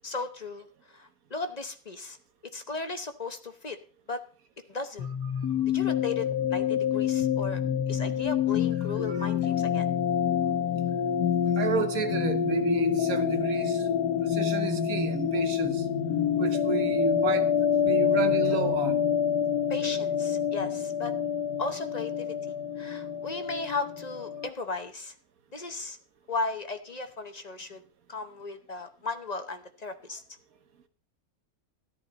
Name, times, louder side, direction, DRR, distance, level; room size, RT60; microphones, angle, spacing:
voice 1, 0.0-2.2 2.5-3.8 4.1-4.2 4.7-5.1 5.7-7.6 7.9-9.9 19.7-21.1 21.6-22.4 22.8-25.1 25.5-26.0 26.3-27.8 28.1-30.2, left 3 dB, 35° left, 0.8 m, -36 dB
sound 1, 5.0-24.5, left 8 dB, 90° left, 1.5 m, -27 dB
voice 2, 11.6-13.9 14.2-15.9 16.4-17.5 17.8-19.0, right 5 dB, 70° right, 1.5 m, -31 dB
13.5 x 11.0 x 4.0 m
omnidirectional pair, 1.6 m